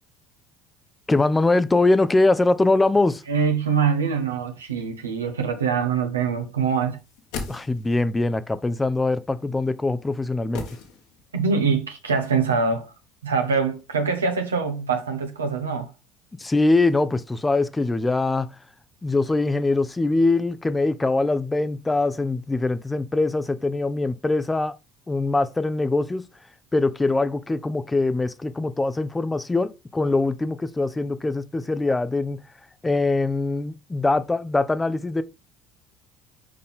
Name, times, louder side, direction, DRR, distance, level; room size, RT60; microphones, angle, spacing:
voice 1, 1.1-3.2 7.5-10.6 16.4-18.5 19.0-24.7 25.1-26.2 26.7-32.4 32.8-35.2, left 2 dB, 15° left, 0.7 m, -22 dB
voice 2, 3.3-7.0 11.3-12.9 13.2-15.9, right 5 dB, 80° right, 1.3 m, -24 dB
sound 1, 6.9-8.2 10.5-11.5 11.7-11.8, left 5 dB, 65° left, 1.8 m, -36 dB
6.5 x 5.4 x 3.6 m
figure-of-eight pair, 60°, 0 cm